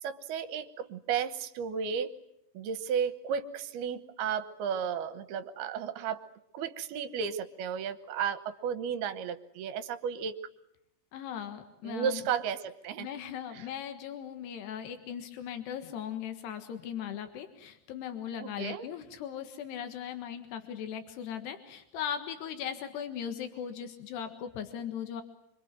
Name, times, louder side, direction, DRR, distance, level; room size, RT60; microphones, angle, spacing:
voice 1, 0.0-2.1 2.5-6.3 6.5-10.4 11.8-13.1 13.5-13.7 18.4-18.9, right 7 dB, 75° right, 12 dB, 3.1 m, -33 dB
voice 2, 11.1-12.2 13.0-25.2, left 9 dB, 85° left, 8 dB, 3.7 m, -38 dB
26.0 x 24.5 x 9.1 m, 0.79 s
omnidirectional pair, 4.6 m